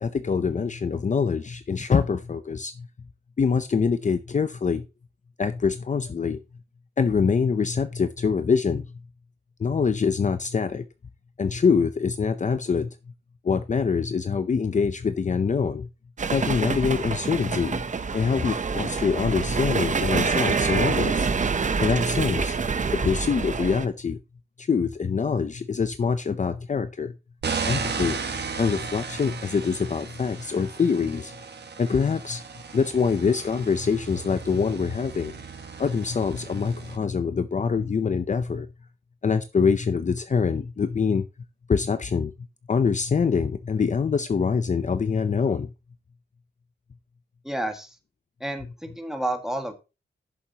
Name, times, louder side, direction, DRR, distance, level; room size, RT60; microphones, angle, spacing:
voice 1, 0.0-2.9 3.4-4.8 5.4-6.4 7.0-8.8 9.6-10.9 11.4-12.9 13.4-15.9 16.3-17.8 18.1-21.3 21.8-22.6 23.0-24.2 24.6-27.1 27.7-28.2 28.6-31.3 31.8-32.4 32.7-35.3 35.8-38.7 39.2-41.2 41.7-42.3 42.7-45.7, left 5 dB, 40° left, 0.6 m, -24 dB
sound 1, 16.2-23.9, right 5 dB, 40° right, 0.7 m, -26 dB
sound 2, 27.4-37.0, right 5 dB, 65° right, 1.3 m, -35 dB
voice 2, 47.4-48.0 48.4-49.7, right 1 dB, ahead, 1.8 m, -30 dB
12.5 x 7.2 x 2.9 m
wide cardioid pair, 110°, 19 cm